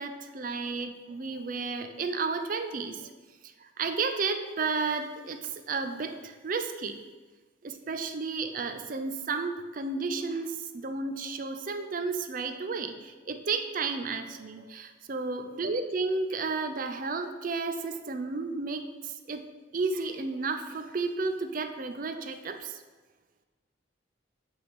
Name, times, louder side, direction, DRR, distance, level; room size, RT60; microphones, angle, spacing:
voice 1, 0.0-3.1 3.6-7.0 7.6-19.5 19.7-22.8, right 4 dB, 45° right, 8 dB, 0.5 m, -32 dB
8.4 x 3.5 x 5.2 m, 1.3 s
head